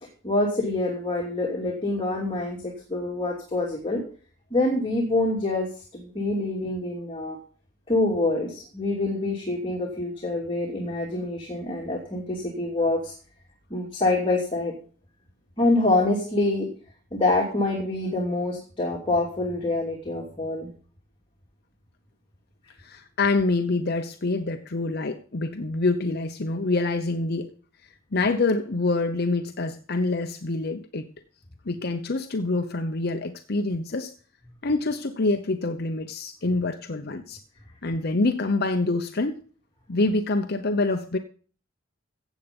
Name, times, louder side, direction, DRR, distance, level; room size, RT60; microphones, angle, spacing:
voice 1, 0.2-4.0 4.5-7.4 7.9-13.1 13.7-14.7 15.6-16.7 17.1-20.7, left 2 dB, 25° left, 2.8 m, -26 dB
voice 2, 22.8-27.5 28.1-31.1 31.7-34.1 34.6-37.4 37.8-39.4 39.9-41.2, left 3 dB, 50° left, 0.8 m, -26 dB
15.5 x 8.3 x 5.3 m
head